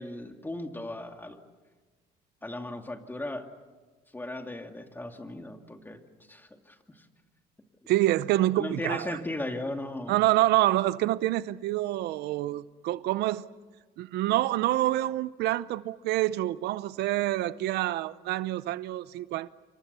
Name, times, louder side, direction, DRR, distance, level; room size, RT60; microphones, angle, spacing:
voice 1, 0.0-1.4 2.4-3.5 4.1-6.0 6.3-7.1 8.6-10.2, left 1 dB, 10° left, 2.5 m, -37 dB
voice 2, 7.9-9.2 10.1-13.4 14.0-19.5, right 15 dB, 80° right, 0.7 m, -27 dB
28.5 x 25.0 x 6.9 m
cardioid pair, 110°, 17 cm